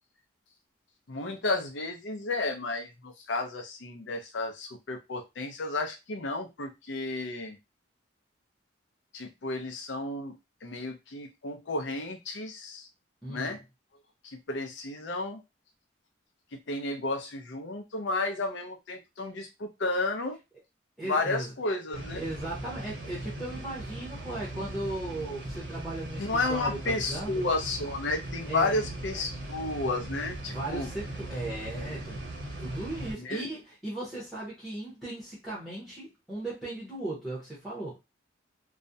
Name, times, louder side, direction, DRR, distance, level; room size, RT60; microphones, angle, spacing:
voice 1, 1.1-7.6 9.1-10.3 10.6-12.9 13.3-13.6 14.2-15.4 16.5-20.4 21.0-22.2 26.2-30.9 31.7-32.0 33.2-33.4, left 2 dB, 65° left, 0.5 m, -32 dB
voice 2, 13.2-13.5 21.0-21.5 22.2-27.5 28.5-28.8 30.5-32.2 32.6-38.0, right 1 dB, ahead, 0.7 m, -37 dB
sound 1, 21.9-33.1, right 1 dB, 80° right, 0.9 m, -39 dB
2.3 x 2.0 x 2.6 m
head